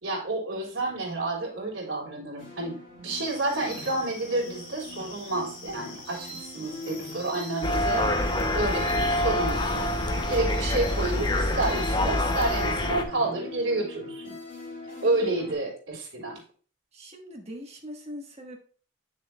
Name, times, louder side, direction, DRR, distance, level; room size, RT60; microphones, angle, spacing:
voice 1, 0.0-8.1 8.5-9.9 10.3-14.4 15.0-16.4, right 2 dB, 70° right, -2 dB, 3.0 m, -30 dB
sound 1, 2.4-15.5, left 2 dB, 40° left, 2.5 m, -42 dB
sound 2, 3.1-12.9, left 2 dB, 60° left, 2.5 m, -44 dB
sound 3, 7.6-13.0, left 1 dB, 20° left, 0.5 m, -26 dB
voice 2, 16.9-18.6, equal, 30° right, 0 dB, 1.3 m, -41 dB
8.9 x 6.5 x 2.2 m, 0.42 s
head